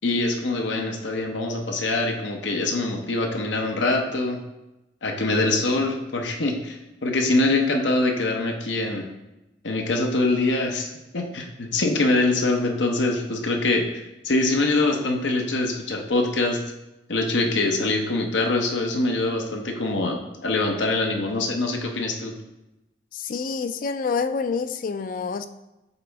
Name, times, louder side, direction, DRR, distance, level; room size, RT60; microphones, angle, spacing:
voice 1, 0.0-4.4 5.0-9.1 9.6-13.9 14.2-16.6 17.1-22.3, left 2 dB, 85° left, 3 dB, 0.9 m, -24 dB
voice 2, 23.1-25.5, left 5 dB, 45° left, 11 dB, 0.3 m, -27 dB
8.3 x 4.1 x 3.4 m, 0.98 s
head